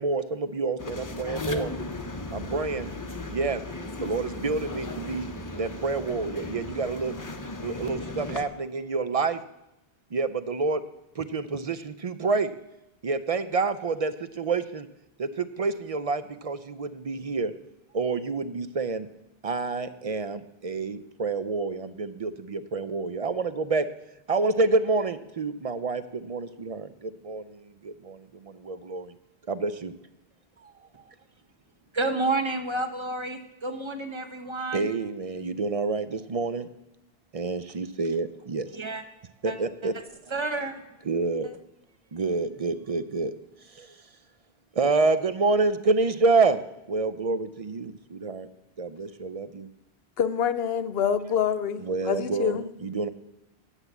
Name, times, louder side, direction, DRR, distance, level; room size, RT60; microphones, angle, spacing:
voice 1, 0.0-1.7 2.3-2.9 3.3-3.6 4.0-5.3 5.6-7.1 7.6-9.4 10.1-10.8 11.2-12.5 13.0-14.9 15.2-15.3 15.6-17.5 17.9-19.1 19.4-23.9 24.3-27.6 27.8-28.2 28.6-29.1 29.5-29.9 34.7-36.7 37.3-38.7 39.4-39.9 41.1-41.5 42.1-43.3 43.8-43.9 44.8-46.6 46.9-48.5 48.8-49.7 51.8-53.1, right 3 dB, 45° right, 0.5 m, -28 dB
sound 1, 0.8-8.4, left 2 dB, 20° left, 0.6 m, -36 dB
voice 2, 31.9-34.9 38.7-39.0 39.5-39.6 40.3-40.8 41.4-41.5, right 2 dB, 30° right, 1.1 m, -30 dB
voice 3, 50.2-52.7, left 8 dB, 70° left, 0.9 m, -26 dB
9.9 x 7.2 x 8.1 m
omnidirectional pair, 1.1 m